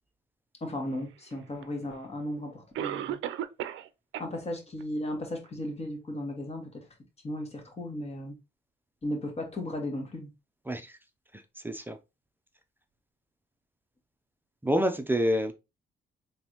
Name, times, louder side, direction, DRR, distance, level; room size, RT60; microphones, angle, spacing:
voice 1, 0.6-3.2 4.2-6.8 7.2-8.4 9.0-10.3, left 1 dB, 30° left, 1.6 m, -35 dB
Cough, 1.6-1.7 2.7-3.9 4.1-4.3 4.8-4.9 5.5-5.6, right 11 dB, 80° right, 0.5 m, -34 dB
voice 2, 10.7-11.0 11.3-12.0 14.6-15.5, equal, 10° right, 0.6 m, -28 dB
3.9 x 3.4 x 3.0 m
cardioid pair, 90°, 20 cm